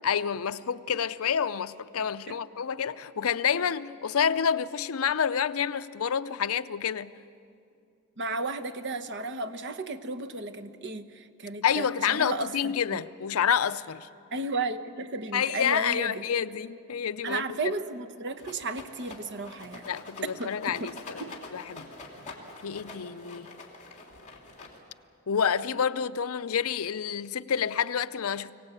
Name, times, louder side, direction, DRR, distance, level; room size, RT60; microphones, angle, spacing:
voice 1, 0.0-7.1 11.6-14.1 15.3-17.4 19.9-21.2 21.5-21.9 22.6-23.5 25.3-28.5, left 7 dB, 70° left, 0.5 m, -28 dB
voice 2, 8.2-13.0 14.3-16.2 17.2-19.9 20.4-20.9 21.2-21.3, right 2 dB, 55° right, 1.0 m, -34 dB
Rattle, 18.4-25.1, left 3 dB, 35° left, 3.0 m, -45 dB
24.5 x 18.0 x 8.2 m
head